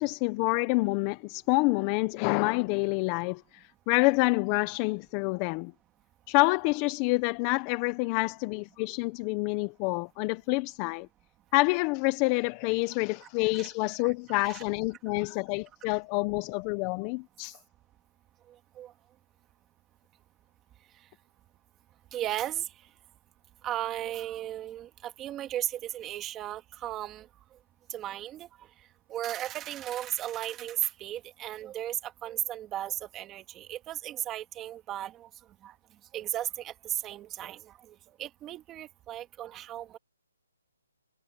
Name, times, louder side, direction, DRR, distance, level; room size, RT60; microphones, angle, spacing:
voice 1, 0.0-5.7 6.3-11.1 11.5-17.6, left 24 dB, 20° left, 0.7 m, -27 dB
voice 2, 14.0-14.6 18.8-18.9 22.1-22.7 23.6-27.3 27.9-28.5 29.1-35.3 35.6-35.7 36.1-40.0, right 12 dB, 15° right, 1.9 m, -35 dB
hypercardioid pair, 165°, 0 cm